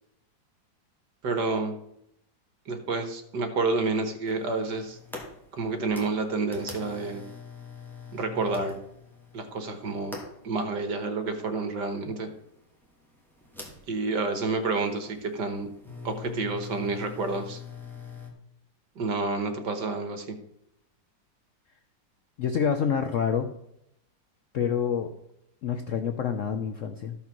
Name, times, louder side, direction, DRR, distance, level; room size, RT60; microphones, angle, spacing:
voice 1, 1.2-1.8 2.7-5.0 5.5-7.2 8.1-8.8 9.3-10.2 10.4-12.3 13.9-15.7 16.0-17.6 19.0-20.4, right 3 dB, 65° right, 7 dB, 1.8 m, -29 dB
sound 1, 4.3-18.3, left 4 dB, ahead, 2.0 m, -44 dB
voice 2, 22.4-23.5 24.5-25.1 25.6-27.2, left 7 dB, 55° left, 7 dB, 0.9 m, -27 dB
13.5 x 5.6 x 6.0 m, 0.78 s
omnidirectional pair, 2.1 m